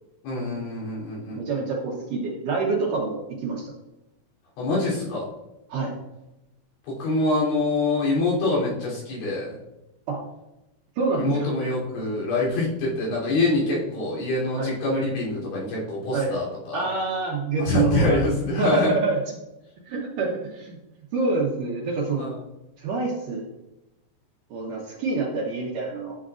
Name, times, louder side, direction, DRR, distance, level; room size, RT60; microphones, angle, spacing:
voice 1, 0.2-1.4 4.6-5.2 6.9-9.6 11.2-16.9 17.6-19.0 22.2-22.4, left 2 dB, 80° left, -6 dB, 5.6 m, -25 dB
voice 2, 1.4-3.7 5.7-5.9 10.1-10.2 11.0-11.5 14.5-14.7 16.1-16.3 16.7-18.2 18.5-19.1 19.9-20.8 21.1-22.3 22.8-23.5 24.5-26.1, right 4 dB, 80° right, -2 dB, 1.9 m, -26 dB
11.5 x 6.5 x 2.5 m, 0.96 s
omnidirectional pair, 5.2 m